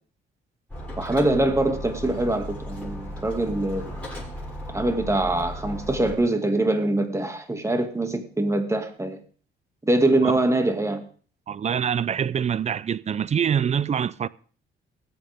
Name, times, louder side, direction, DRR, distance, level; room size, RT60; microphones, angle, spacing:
sound 1, 0.7-6.2, equal, 5° left, 6.7 m, -36 dB
voice 1, 1.0-3.9 4.7-9.2 9.8-11.0, right 2 dB, 15° right, 2.1 m, -23 dB
voice 2, 11.5-14.3, right 8 dB, 35° right, 0.5 m, -25 dB
21.0 x 8.1 x 3.5 m
cardioid pair, 90°, 20 cm